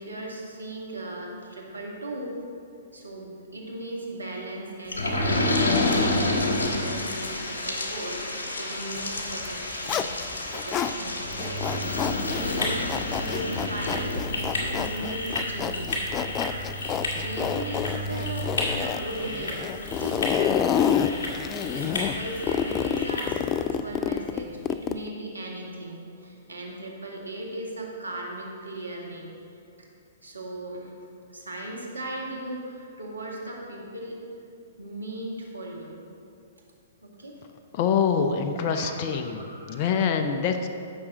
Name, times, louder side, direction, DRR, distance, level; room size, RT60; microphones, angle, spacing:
voice 1, 0.0-2.4 2.9-5.9 6.2-16.0 17.2-29.3 30.2-31.0 31.3-34.2 34.8-36.0 37.0-37.4 38.6-40.0, right 1 dB, 90° right, -1 dB, 1.9 m, -38 dB
sound 1, 4.9-19.2 19.6-19.7 20.0-20.1, left 2 dB, 80° left, 1.4 m, -30 dB
Zipper (clothing), 9.3-10.9 11.3-25.1, left 9 dB, 25° left, 0.4 m, -28 dB
sound 2, 11.8-23.6, left 1 dB, 65° left, 2.4 m, -33 dB
voice 2, 37.7-40.7, left 6 dB, 45° left, 6 dB, 0.7 m, -25 dB
15.0 x 6.2 x 3.8 m, 2.5 s
hypercardioid pair, 120°, 0 cm